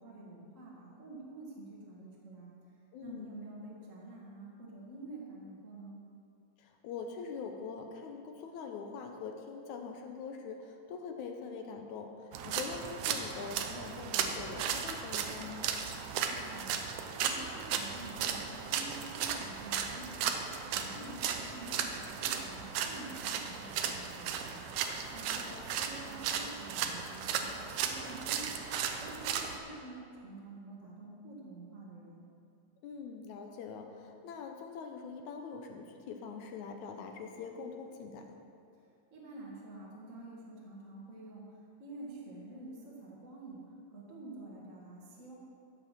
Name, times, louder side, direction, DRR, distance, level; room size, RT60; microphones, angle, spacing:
voice 1, 0.0-2.5 3.0-6.0 16.2-20.3 20.7-27.5 27.8-28.5 29.0-32.2 38.8-45.3, right 2 dB, 30° right, -4 dB, 1.5 m, -48 dB
voice 2, 2.9-3.3 6.6-15.7 20.9-21.3 25.4-25.7 32.8-38.4, left 5 dB, 75° left, 4 dB, 1.9 m, -43 dB
sound 1, 12.3-29.6, right 7 dB, 75° right, 1.9 m, -36 dB
15.0 x 5.4 x 5.8 m, 2.5 s
omnidirectional pair, 3.8 m